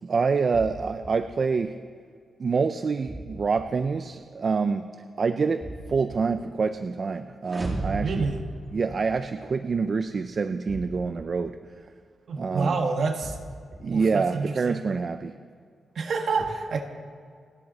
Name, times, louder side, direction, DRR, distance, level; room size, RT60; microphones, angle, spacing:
voice 1, 0.0-1.8 2.4-4.9 5.2-8.1 8.7-11.6 12.4-12.8 13.8-15.4, right 5 dB, 45° right, 9 dB, 0.5 m, -26 dB
sound 1, 0.5-1.1 3.1-3.6 5.6-6.2 8.1-8.7 10.7-11.3 13.2-13.8, right 1 dB, 10° right, 2.1 m, -40 dB
sound 2, 7.4-9.6, right 2 dB, 25° right, 2.8 m, -34 dB
voice 2, 7.8-8.4 12.3-13.4 13.9-14.8 15.9-16.8, right 4 dB, 60° right, 4 dB, 1.5 m, -28 dB
29.0 x 10.5 x 4.1 m, 2.1 s
wide cardioid pair, 125°, 0 cm